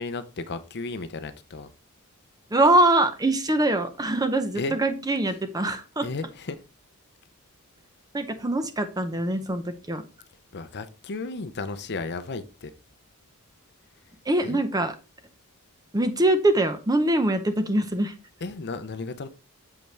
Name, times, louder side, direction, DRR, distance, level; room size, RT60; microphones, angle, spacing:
voice 1, 0.0-1.7 4.6-4.8 6.0-6.6 10.5-12.7 14.4-14.6 18.4-19.3, left 3 dB, 50° left, 0.6 m, -34 dB
voice 2, 2.5-6.1 8.1-10.0 14.3-14.9 15.9-18.1, right 1 dB, 15° right, 0.7 m, -23 dB
7.5 x 5.4 x 3.3 m
head